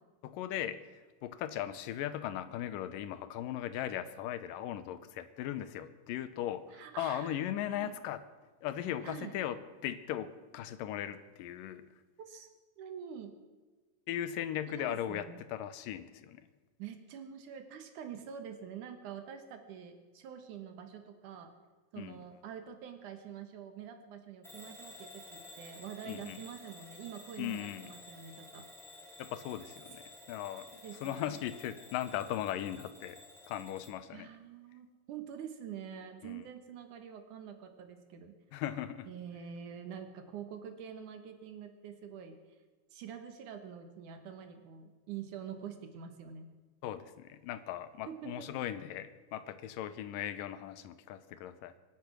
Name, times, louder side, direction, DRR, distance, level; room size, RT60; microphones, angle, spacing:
voice 1, 0.2-8.2 8.6-11.8 14.1-16.5 22.0-22.2 26.1-26.4 27.4-27.9 29.2-30.7 31.0-33.2 33.5-34.3 36.2-36.5 38.5-39.1 46.8-51.7, left 11 dB, 85° left, 12 dB, 2.5 m, -38 dB
voice 2, 6.7-7.4 7.7-8.0 9.0-9.3 12.3-12.5 12.8-13.4 14.7-15.3 16.8-21.5 21.9-28.7 30.8-31.3 34.1-38.4 39.1-42.4 42.9-46.5 48.1-48.5, right 8 dB, 70° right, 7 dB, 2.7 m, -46 dB
Bell / Alarm, 24.4-34.0, left 1 dB, ahead, 2.6 m, -53 dB
25.0 x 8.6 x 6.2 m, 1.3 s
omnidirectional pair, 3.8 m